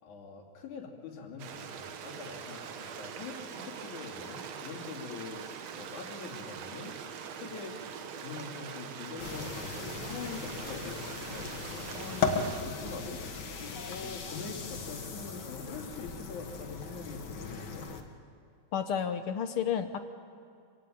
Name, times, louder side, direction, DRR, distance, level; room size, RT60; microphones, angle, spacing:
voice 1, 0.0-5.4 5.7-7.0 7.3-7.8 8.2-17.9, left 5 dB, 80° left, -1 dB, 4.1 m, -44 dB
Stream, 1.4-12.6, right 7 dB, 65° right, 2.3 m, -43 dB
sound 1, 9.2-18.0, left 5 dB, 45° left, 1.8 m, -37 dB
voice 2, 18.7-20.0, left 8 dB, 65° left, 9 dB, 1.5 m, -31 dB
26.5 x 17.0 x 8.8 m, 2.5 s
omnidirectional pair, 3.4 m